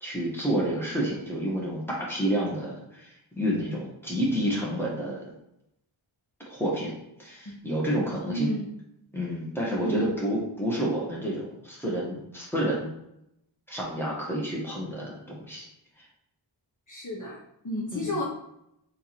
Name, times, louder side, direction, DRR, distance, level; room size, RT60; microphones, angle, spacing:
voice 1, 0.0-5.2 6.5-6.9 7.2-8.5 9.1-12.9 13.7-15.7 17.9-18.1, equal, 5° left, -5 dB, 1.6 m, -29 dB
voice 2, 8.3-8.7 9.8-10.1 16.9-17.4 17.6-18.2, equal, 40° left, -4 dB, 0.8 m, -31 dB
3.6 x 3.1 x 4.3 m, 0.80 s
wide cardioid pair, 45°, 46 cm